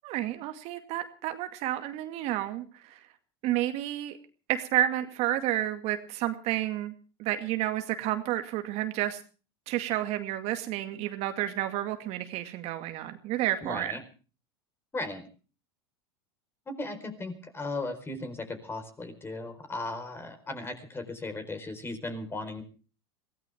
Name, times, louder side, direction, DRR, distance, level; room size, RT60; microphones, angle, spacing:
voice 1, 0.0-3.0 3.4-4.2 4.5-6.9 7.2-9.2 9.7-14.0, right 13 dB, 55° right, 7 dB, 2.2 m, -30 dB
voice 2, 13.6-14.0 14.9-15.2 16.7-22.6, left 2 dB, 15° left, 9 dB, 4.5 m, -36 dB
23.5 x 17.0 x 3.6 m, 0.37 s
hypercardioid pair, 105°, 13 cm